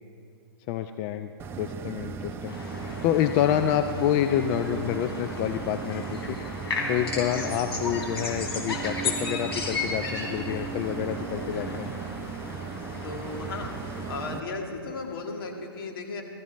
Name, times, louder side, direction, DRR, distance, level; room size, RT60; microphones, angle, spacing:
voice 1, 0.7-1.3 1.6-2.6 3.0-6.4 6.9-11.9, left 10 dB, 30° left, 8 dB, 0.4 m, -27 dB
sound 1, 1.4-14.4, right 5 dB, 15° right, 0.6 m, -37 dB
sound 2, 2.5-14.2, left 3 dB, 85° left, 3.2 m, -36 dB
sound 3, 3.7-11.7, right 5 dB, 35° right, 4.0 m, -41 dB
voice 2, 13.0-13.7 14.1-16.2, left 3 dB, 65° left, 1 dB, 2.1 m, -35 dB
20.0 x 14.5 x 3.2 m, 2.5 s
hypercardioid pair, 130°, 13 cm